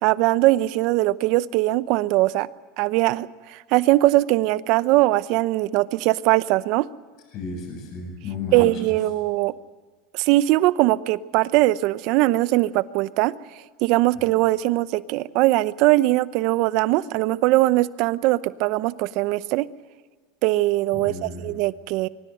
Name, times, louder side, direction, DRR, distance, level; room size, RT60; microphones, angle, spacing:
voice 1, 0.0-2.5 2.8-6.9 8.5-9.5 10.1-13.3 13.8-19.7 20.4-22.1, right 18 dB, 60° right, 17 dB, 0.8 m, -21 dB
voice 2, 7.3-8.9 14.1-14.2 20.9-21.5, left 3 dB, 50° left, 3 dB, 7.3 m, -33 dB
23.5 x 18.5 x 7.9 m, 1.5 s
supercardioid pair, 110°, 0 cm